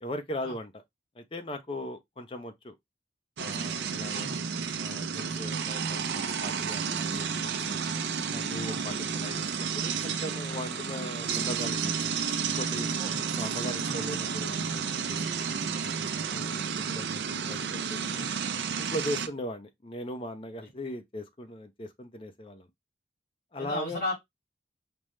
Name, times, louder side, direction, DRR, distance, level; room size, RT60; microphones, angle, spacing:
voice 1, 0.0-0.8 1.2-2.7 3.4-4.3 4.8-7.8 8.3-9.5 9.7-12.0 12.5-12.9 13.3-14.8 15.1-15.3 16.3-16.6 16.9-18.4 18.8-22.7 23.5-24.0, left 1 dB, 30° left, 0.5 m, -39 dB
sound 1, 3.4-19.3, right 6 dB, 75° right, 0.5 m, -31 dB
voice 2, 13.0-13.4 13.8-14.1 16.3-16.5 18.1-18.2 23.6-24.1, left 1 dB, 50° left, 3.1 m, -36 dB
5.1 x 2.1 x 3.1 m
head